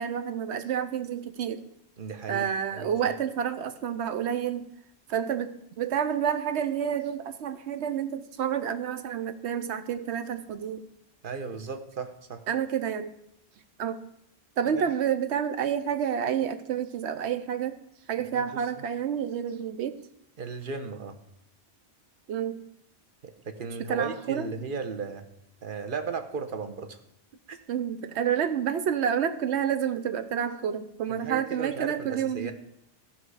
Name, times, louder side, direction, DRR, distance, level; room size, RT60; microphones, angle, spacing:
voice 1, 0.0-1.6 2.3-4.7 5.1-10.8 12.5-13.1 13.8-14.0 14.6-17.8 18.1-20.0 22.3-22.6 23.9-24.5 27.7-32.5, right 8 dB, 80° right, 11 dB, 1.0 m, -29 dB
voice 2, 2.0-2.5 2.7-2.9 11.2-12.4 14.7-14.8 18.3-18.8 20.4-21.2 23.2-25.2 25.6-27.0 27.5-27.6 31.1-32.5, right 5 dB, 55° right, 8 dB, 1.1 m, -35 dB
14.0 x 5.6 x 4.8 m, 0.76 s
omnidirectional pair, 1.1 m